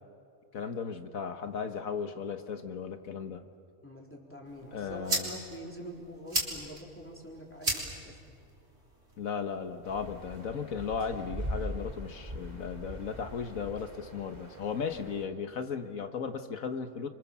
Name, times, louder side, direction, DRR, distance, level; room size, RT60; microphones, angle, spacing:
voice 1, 0.5-3.5 4.7-5.3 9.2-17.1, left 6 dB, 75° left, 8 dB, 1.7 m, -36 dB
voice 2, 3.8-8.4, equal, 10° left, -1 dB, 3.9 m, -45 dB
sound 1, 4.4-10.4, right 1 dB, 50° right, 4.1 m, -38 dB
sound 2, 9.8-15.2, equal, 30° right, 2.6 m, -41 dB
28.5 x 25.0 x 7.3 m, 2.5 s
omnidirectional pair, 1.5 m